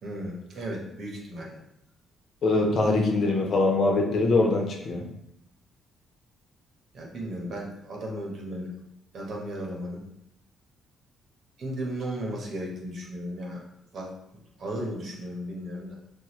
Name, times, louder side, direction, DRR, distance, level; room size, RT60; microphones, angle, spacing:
voice 1, 0.0-1.6 6.9-8.7 9.1-10.0 11.6-13.6 13.9-14.1 14.6-16.0, right 1 dB, 60° right, -1 dB, 0.9 m, -35 dB
voice 2, 2.4-5.0, left 2 dB, 60° left, 0 dB, 0.7 m, -23 dB
4.2 x 2.1 x 3.0 m, 0.80 s
cardioid pair, 90°, 0 cm